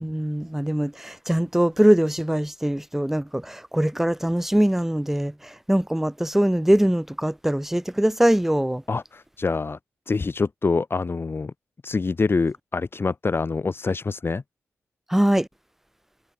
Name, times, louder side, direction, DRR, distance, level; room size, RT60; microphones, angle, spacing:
voice 1, 0.0-8.8 15.1-15.5, right 1 dB, 5° right, 0.7 m, -22 dB
voice 2, 8.9-9.8 10.1-11.5 11.8-14.4, left 4 dB, 40° left, 1.0 m, -25 dB
supercardioid pair, 40°, 6 cm